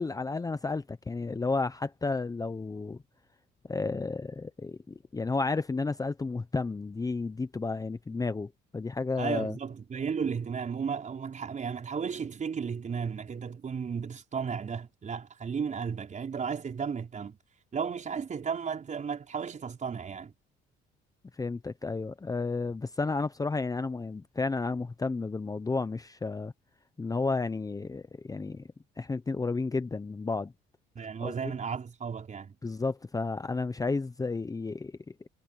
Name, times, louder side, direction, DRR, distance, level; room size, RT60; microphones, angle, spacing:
voice 1, 0.0-3.0 3.7-9.5 21.4-26.5 27.0-28.6 29.0-30.5 31.2-31.5 32.6-34.9, left 3 dB, 20° left, 0.9 m, -32 dB
voice 2, 9.2-17.4 17.7-20.3 31.0-32.6, right 6 dB, 40° right, 5.3 m, -34 dB
cardioid pair, 95°, 20 cm